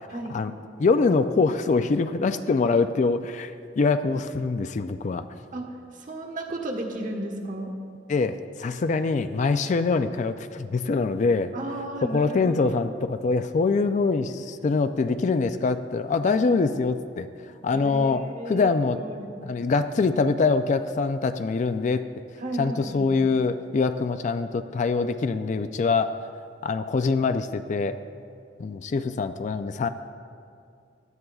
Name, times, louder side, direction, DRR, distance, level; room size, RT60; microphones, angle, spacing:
voice 1, 0.1-0.4 5.5-7.7 11.5-12.8 17.7-19.3 22.4-23.1, right 1 dB, 45° right, 1 dB, 1.2 m, -34 dB
voice 2, 0.8-5.2 8.1-11.5 12.0-17.3 17.6-19.0 19.4-22.0 22.6-26.2 26.6-28.0 28.6-29.9, left 4 dB, 40° left, 10 dB, 0.3 m, -24 dB
16.5 x 11.0 x 2.3 m, 2.4 s
head